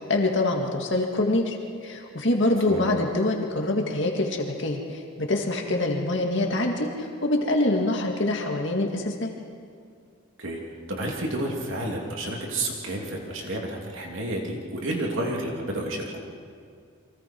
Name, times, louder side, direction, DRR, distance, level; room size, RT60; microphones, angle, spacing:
voice 1, 0.1-1.6 1.8-9.3, left 2 dB, 55° left, 1 dB, 2.1 m, -25 dB
voice 2, 10.9-16.1, right 1 dB, 65° right, -1 dB, 3.2 m, -30 dB
29.5 x 24.0 x 4.7 m, 2.2 s
head